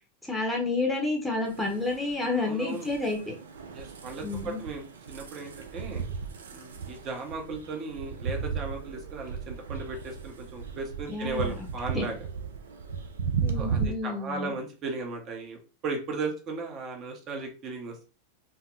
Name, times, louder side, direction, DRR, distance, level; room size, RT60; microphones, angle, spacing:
voice 1, 0.2-3.3 4.2-4.6 11.1-11.6 11.9-12.1 13.4-14.5, left 3 dB, 5° left, 0 dB, 0.9 m, -30 dB
sound 1, 1.4-13.9, right 6 dB, 75° right, 0.4 m, -36 dB
voice 2, 2.4-2.9 3.7-6.0 6.5-12.2 13.5-18.1, right 3 dB, 40° right, 3 dB, 0.8 m, -36 dB
3.5 x 2.1 x 2.5 m, 0.32 s
figure-of-eight pair, 90°, 0 cm